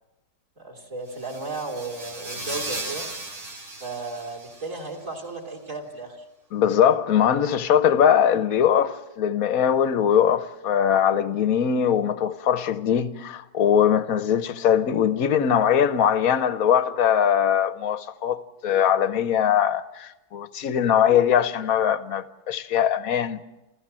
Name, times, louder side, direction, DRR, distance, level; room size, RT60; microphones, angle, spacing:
voice 1, 0.6-3.1 3.8-6.2 20.6-20.8, right 3 dB, 40° right, 3.7 m, -34 dB
sound 1, 1.1-5.0, right 2 dB, 60° right, 4.9 m, -36 dB
voice 2, 6.5-23.4, left 9 dB, 55° left, 1.1 m, -21 dB
29.5 x 14.5 x 7.5 m
omnidirectional pair, 2.2 m